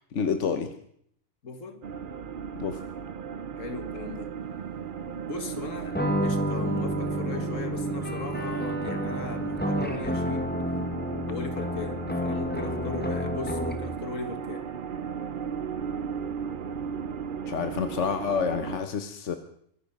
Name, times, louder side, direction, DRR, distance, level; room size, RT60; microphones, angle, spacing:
voice 1, 0.1-0.7 2.6-2.8 17.5-19.4, left 6 dB, 70° left, 8 dB, 1.4 m, -28 dB
voice 2, 1.4-1.8 3.6-4.3 5.3-10.6 11.3-14.7, left 4 dB, 85° left, 7 dB, 2.1 m, -38 dB
sound 1, 1.8-18.8, right 7 dB, 50° right, 0.8 m, -36 dB
sound 2, 5.9-14.0, equal, 10° left, 1.4 m, -30 dB
24.0 x 10.5 x 5.4 m, 0.67 s
omnidirectional pair, 1.3 m